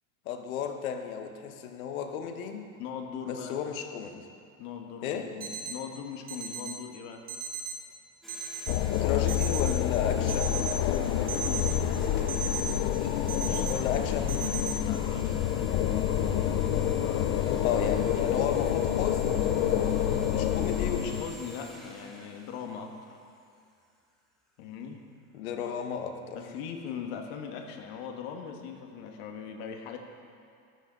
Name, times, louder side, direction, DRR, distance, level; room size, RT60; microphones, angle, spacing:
voice 1, 0.2-2.7 3.2-4.3 5.0-5.3 9.0-10.8 13.7-14.4 17.6-21.1 25.3-26.4, left 7 dB, 85° left, 6 dB, 1.3 m, -34 dB
voice 2, 2.8-3.6 4.6-7.3 11.3-12.0 13.4-13.7 14.0-14.1 14.8-15.7 16.8-17.6 21.0-23.2 24.6-25.0 26.3-30.0, left 7 dB, 55° left, 3 dB, 1.5 m, -40 dB
sound 1, 5.4-5.7 6.3-6.7 7.3-7.7 8.3-8.7 9.3-9.7 10.3-10.7 11.3-11.7 12.3-12.7 13.3-13.7 14.3-14.7, right 9 dB, 20° right, 0.8 m, -35 dB
sound 2, 8.2-23.4, left 1 dB, ahead, 1.3 m, -48 dB
sound 3, 8.7-21.2, left 10 dB, 30° left, 0.4 m, -28 dB
14.5 x 11.5 x 4.0 m, 2.3 s
supercardioid pair, 155°, 41 cm